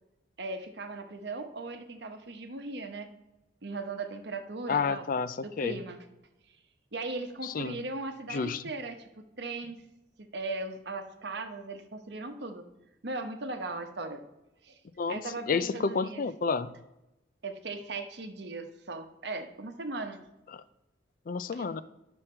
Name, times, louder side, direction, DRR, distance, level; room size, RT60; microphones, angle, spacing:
voice 1, 0.4-3.1 3.6-5.0 5.4-6.0 6.9-9.8 10.2-12.6 13.0-14.2 14.6-14.8 15.1-16.2 17.4-20.2 21.5-21.7, right 3 dB, 65° right, 6 dB, 1.0 m, -38 dB
voice 2, 4.7-5.8 7.4-7.8 8.3-8.6 15.0-15.2 15.5-16.7 20.5-20.6 21.3-21.8, left 5 dB, 50° left, 15 dB, 0.4 m, -30 dB
10.5 x 6.3 x 4.4 m, 0.94 s
head